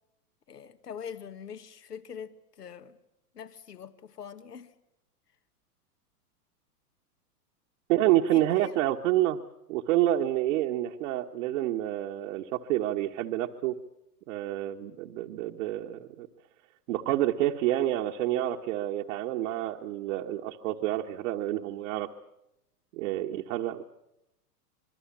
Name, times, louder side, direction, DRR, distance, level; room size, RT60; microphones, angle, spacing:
voice 1, 0.5-3.0 3.3-4.7 8.3-8.7, left 7 dB, 85° left, 1.7 m, -43 dB
voice 2, 7.9-9.4 9.7-13.8 14.3-16.3 16.9-22.1 22.9-23.8, right 13 dB, 55° right, 1.4 m, -28 dB
25.5 x 21.5 x 7.3 m
hypercardioid pair, 110°, 46 cm